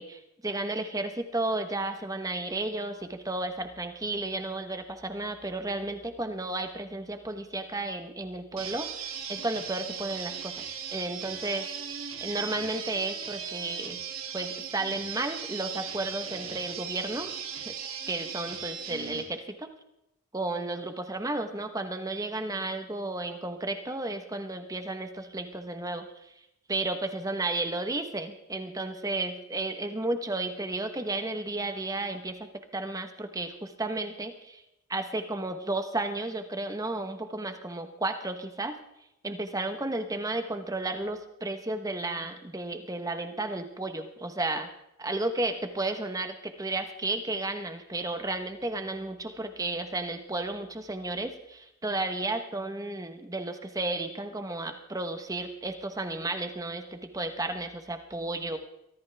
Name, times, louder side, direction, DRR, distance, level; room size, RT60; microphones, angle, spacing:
voice 1, 0.0-10.7 10.9-11.7 12.2-14.0 14.3-17.3 17.7-19.7 20.3-26.3 26.7-32.5 32.7-34.6 34.9-38.8 39.2-44.7 45.0-58.6, right 2 dB, 15° right, 8 dB, 1.0 m, -33 dB
sound 1, 8.6-19.2, right 7 dB, 75° right, 2.5 m, -38 dB
23.0 x 14.5 x 3.4 m, 0.84 s
head